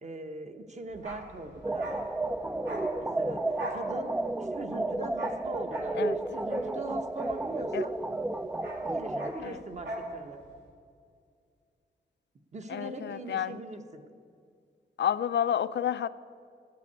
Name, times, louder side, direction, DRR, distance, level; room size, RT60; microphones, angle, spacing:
voice 1, 0.0-2.0 3.0-7.9 8.8-10.4 12.5-14.0, right 2 dB, 40° right, 1.0 m, -40 dB
Bark, 0.9-8.0 8.2-10.2 10.4-10.6, right 1 dB, 75° right, 2.5 m, -42 dB
sound 1, 1.6-9.3, right 2 dB, 10° right, 0.3 m, -32 dB
voice 2, 12.7-13.6 15.0-16.1, left 9 dB, 70° left, 0.4 m, -30 dB
13.0 x 8.2 x 8.3 m
wide cardioid pair, 165°, 19 cm